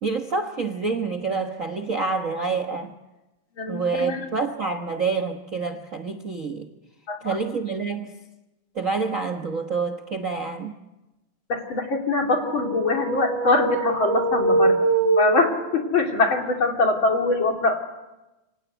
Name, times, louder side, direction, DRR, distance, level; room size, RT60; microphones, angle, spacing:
voice 1, 0.0-2.9 3.7-6.7 7.2-8.1 8.7-10.7, right 4 dB, 75° right, 8 dB, 0.7 m, -27 dB
voice 2, 3.6-4.3 7.1-7.4 11.5-14.8 15.2-17.8, left 3 dB, 40° left, 3 dB, 3.4 m, -23 dB
sound 1, 12.3-15.9, right 3 dB, 60° right, 2.8 m, -23 dB
27.5 x 24.5 x 8.1 m, 1.0 s
omnidirectional pair, 3.6 m